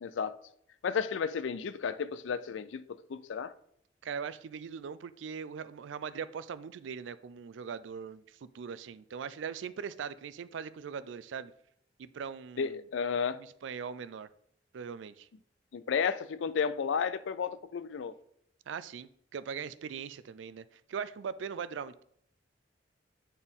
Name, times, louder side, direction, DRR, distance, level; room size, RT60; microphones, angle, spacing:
voice 1, 0.0-0.4 0.8-3.5 12.6-13.4 15.7-18.1, left 6 dB, 85° left, 0.4 m, -32 dB
voice 2, 4.0-11.5 12.0-12.8 13.3-14.3 14.7-15.3 18.7-22.0, right 6 dB, 80° right, 0.4 m, -40 dB
8.7 x 4.2 x 3.6 m
head